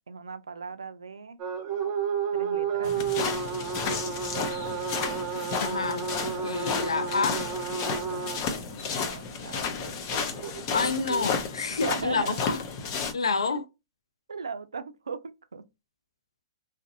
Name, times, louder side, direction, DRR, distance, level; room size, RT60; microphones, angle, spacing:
voice 1, 0.1-1.4 2.3-3.0 8.8-10.3 11.7-12.6 13.5-13.6 14.3-15.7, right 5 dB, 90° right, 0.3 m, -38 dB
sound 1, 1.4-8.4 10.1-11.2, right 7 dB, 35° right, 0.6 m, -31 dB
sound 2, 2.8-13.1, left 5 dB, 45° left, 0.6 m, -32 dB
voice 2, 5.6-6.1 6.4-7.5 10.7-12.6 13.1-13.7, left 4 dB, 85° left, 0.4 m, -28 dB
2.6 x 2.0 x 2.5 m
hypercardioid pair, 115°, 3 cm